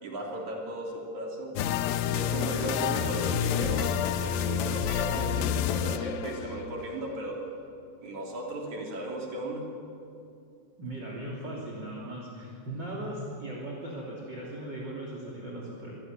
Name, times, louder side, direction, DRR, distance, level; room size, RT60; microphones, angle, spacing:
voice 1, 0.0-1.6 2.1-7.4 8.0-9.7, right 1 dB, 45° right, -1 dB, 4.2 m, -36 dB
sound 1, 1.6-6.8, left 9 dB, 75° left, 2.2 m, -29 dB
voice 2, 2.3-3.7 10.8-15.9, right 1 dB, 30° right, -4 dB, 3.1 m, -38 dB
25.5 x 17.0 x 9.2 m, 2.6 s
omnidirectional pair, 5.1 m